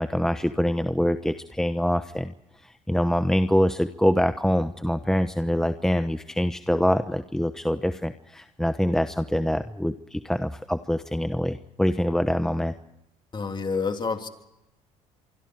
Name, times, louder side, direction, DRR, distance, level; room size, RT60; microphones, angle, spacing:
voice 1, 0.0-2.3 2.6-12.7, equal, 5° left, 10 dB, 1.0 m, -25 dB
voice 2, 13.3-14.3, left 4 dB, 30° left, 5 dB, 3.4 m, -28 dB
25.5 x 25.5 x 4.8 m, 0.89 s
supercardioid pair, 75°, 15 cm